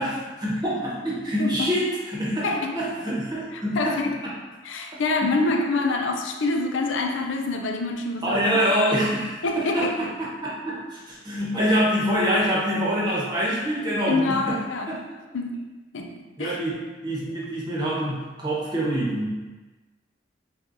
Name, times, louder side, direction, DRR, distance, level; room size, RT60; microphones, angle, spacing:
voice 1, 0.0-2.4 2.7-3.9 5.2-5.4 8.2-14.6 14.9-15.0 16.4-16.8 17.0-19.5, equal, 25° right, -6 dB, 1.0 m, -25 dB
voice 2, 1.4-1.7 2.4-2.8 3.5-4.2 4.6-8.4 9.4-10.1 14.1-15.0 15.3-15.7 15.9-16.6, left 3 dB, 80° left, 3 dB, 0.5 m, -26 dB
6.1 x 2.4 x 2.6 m, 1.2 s
head